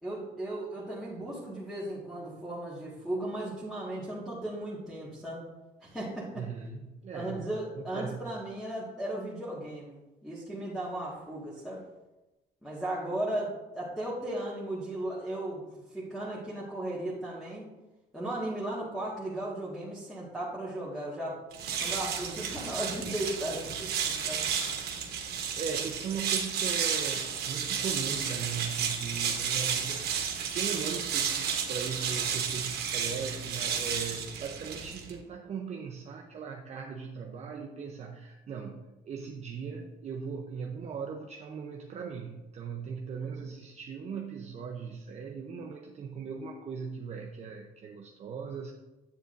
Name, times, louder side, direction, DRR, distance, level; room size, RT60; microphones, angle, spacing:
voice 1, 0.0-5.4 5.8-6.4 7.1-11.8 12.6-15.6 15.9-17.7 18.1-21.4 21.8-24.5 43.2-43.3, right 1 dB, ahead, -9 dB, 1.7 m, -36 dB
voice 2, 6.4-7.5 7.7-8.3 25.5-48.7, right 6 dB, 40° right, 1 dB, 0.7 m, -39 dB
sound 1, 21.5-35.2, right 7 dB, 70° right, 1.2 m, -32 dB
8.1 x 7.8 x 2.6 m, 1.1 s
cardioid pair, 110°, 17 cm